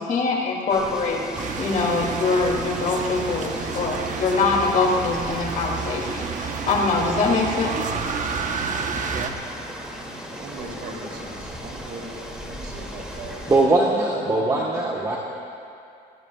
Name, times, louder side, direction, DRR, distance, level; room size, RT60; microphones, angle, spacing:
voice 1, 0.0-7.7, left 3 dB, 50° left, -1 dB, 2.8 m, -23 dB
sound 1, 0.7-13.7, equal, 5° right, 2.6 m, -37 dB
sound 2, 1.4-9.3, right 5 dB, 50° right, 1.1 m, -30 dB
voice 2, 10.3-13.5 14.1-15.2, right 3 dB, 65° right, -1 dB, 3.2 m, -38 dB
voice 3, 13.5-15.2, right 2 dB, 20° right, -3 dB, 1.4 m, -21 dB
23.0 x 18.5 x 2.4 m, 2.5 s
cardioid pair, 110°, 17 cm